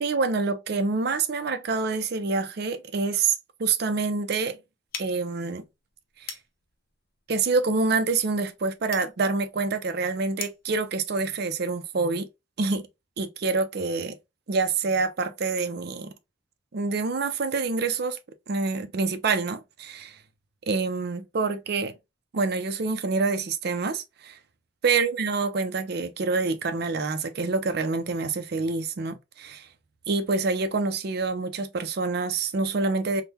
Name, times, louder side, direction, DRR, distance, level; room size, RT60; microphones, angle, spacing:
voice 1, 0.0-3.3 3.6-4.6 5.0-5.6 6.2-6.3 7.3-12.3 12.6-12.8 13.2-14.2 14.5-16.1 16.7-18.2 18.5-20.2 20.7-21.9 22.3-24.4 24.8-29.7 30.1-33.2, right 4 dB, 55° right, 0.5 m, -26 dB
sound 1, 4.9-10.8, left 7 dB, 50° left, 0.6 m, -43 dB
3.6 x 2.1 x 2.8 m
head